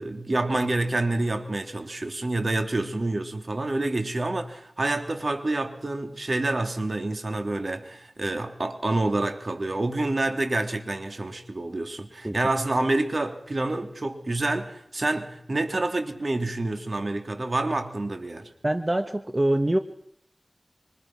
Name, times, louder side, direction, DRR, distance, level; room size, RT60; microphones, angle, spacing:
voice 1, 0.0-18.5, right 2 dB, 60° right, 3.0 m, -28 dB
voice 2, 18.6-19.8, right 1 dB, 30° right, 1.4 m, -24 dB
25.5 x 25.0 x 6.1 m
cardioid pair, 40°, 0 cm